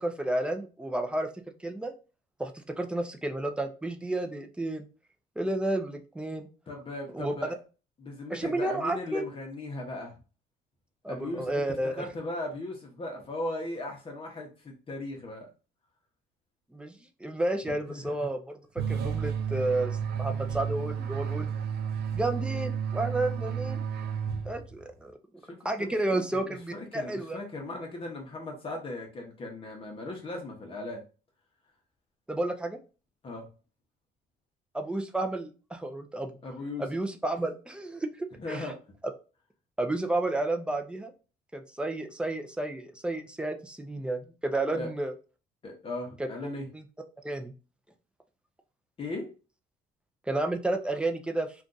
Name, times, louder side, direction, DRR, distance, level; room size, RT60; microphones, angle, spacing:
voice 1, 0.0-1.3 1.6-1.9 2.4-2.5 2.8-4.9 5.4-6.5 7.1-7.3 8.3-9.2 11.0-12.1 16.7-16.9 17.2-18.4 18.9-19.9 20.2-21.5 22.1-23.8 24.5-25.1 25.6-27.4 32.3-32.8 34.7-36.4 36.8-38.7 39.8-41.1 41.5-45.1 46.7-46.8 47.2-47.5 50.3-51.5, right 2 dB, 5° right, 5 dB, 0.4 m, -31 dB
voice 2, 6.7-7.5 8.0-10.1 11.1-15.5 17.7-18.3 25.4-31.0 33.2-33.5 36.4-36.9 38.4-38.8 44.7-44.9 45.6-46.7 49.0-49.3, left 2 dB, 35° left, 1 dB, 0.8 m, -38 dB
sound 1, 18.8-24.9, right 7 dB, 70° right, 0.5 m, -32 dB
2.5 x 2.3 x 3.8 m, 0.34 s
cardioid pair, 110°, 17 cm